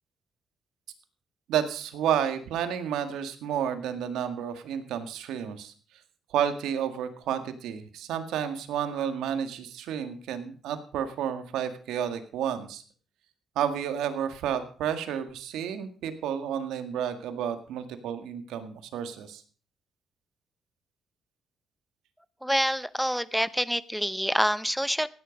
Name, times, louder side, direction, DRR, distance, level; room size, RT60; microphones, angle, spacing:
voice 1, 1.5-5.7 6.3-12.8 13.6-19.4, right 9 dB, 85° right, 8 dB, 1.9 m, -31 dB
voice 2, 22.4-25.1, equal, ahead, 16 dB, 0.8 m, -26 dB
16.0 x 10.0 x 5.3 m, 0.42 s
cardioid pair, 90°, 0 cm